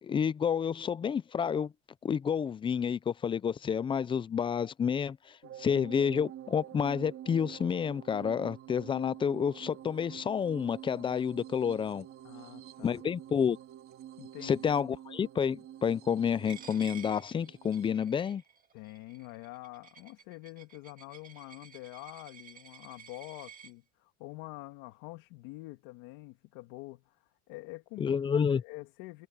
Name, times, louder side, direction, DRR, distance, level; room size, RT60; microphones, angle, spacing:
voice 1, 0.0-1.7 2.0-5.2 5.6-12.1 12.8-13.6 14.4-18.4 28.0-28.6, left 7 dB, 15° left, 0.4 m, -29 dB
sound 1, 5.4-17.9, right 11 dB, 40° right, 3.4 m, -48 dB
voice 2, 12.2-13.0 14.2-14.6 18.7-27.2 27.5-29.3, left 21 dB, 65° left, 2.2 m, -46 dB
Coin (dropping), 16.5-23.7, right 7 dB, 25° right, 2.1 m, -53 dB
supercardioid pair, 140°, 34 cm